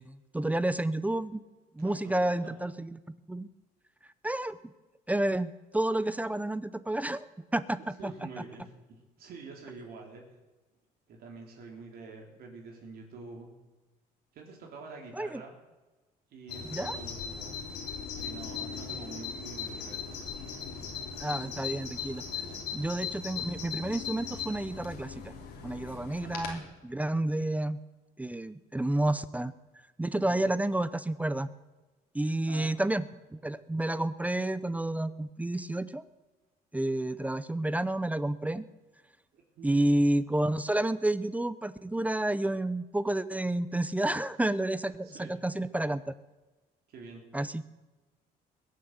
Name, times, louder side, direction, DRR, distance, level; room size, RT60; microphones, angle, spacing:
voice 1, 0.0-1.4 1.7-3.0 3.3-3.5 4.2-4.6 5.1-7.3 7.5-8.1 15.1-15.4 16.7-17.0 21.2-22.2 22.7-25.2 25.6-27.8 28.2-29.5 30.0-31.5 32.1-36.0 36.7-38.6 39.6-46.0 47.3-47.6, right 1 dB, 10° right, 15 dB, 0.6 m, -30 dB
voice 2, 1.8-2.5 6.2-6.3 8.0-10.2 11.1-13.5 14.3-15.6 16.3-17.6 18.1-20.0 22.3-22.6 26.2-26.5 30.2-30.5 32.4-32.7 39.3-39.8 45.0-45.3 46.9-47.2, right 4 dB, 65° right, 0 dB, 3.5 m, -47 dB
Bird vocalization bird call bird song, 16.5-26.6, left 6 dB, 85° left, 3.3 m, -39 dB
21.5 x 7.9 x 8.0 m, 1.2 s
cardioid pair, 110°, 17 cm